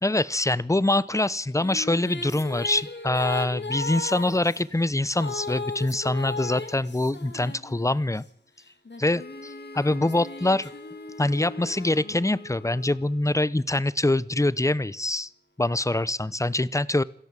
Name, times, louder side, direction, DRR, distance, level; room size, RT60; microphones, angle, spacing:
voice 1, 0.0-8.2 9.0-10.7 11.2-15.3 15.6-17.0, left 2 dB, 15° left, 19 dB, 0.8 m, -24 dB
sound 1, 1.2-8.2 8.9-12.6, left 3 dB, 80° left, 3.1 m, -37 dB
sound 2, 9.1-13.5, left 2 dB, 65° left, 2.0 m, -46 dB
27.0 x 13.0 x 7.5 m, 0.67 s
wide cardioid pair, 45°, 18 cm